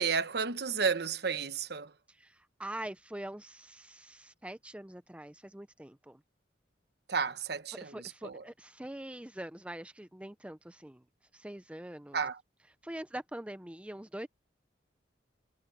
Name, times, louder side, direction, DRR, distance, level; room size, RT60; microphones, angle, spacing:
voice 1, 0.0-1.9 7.1-8.0 8.2-8.4 12.1-12.4, right 5 dB, 60° right, 1.0 m, -32 dB
voice 2, 2.1-6.2 7.8-11.0 11.3-12.2 12.8-14.3, right 1 dB, 5° right, 0.7 m, -44 dB
head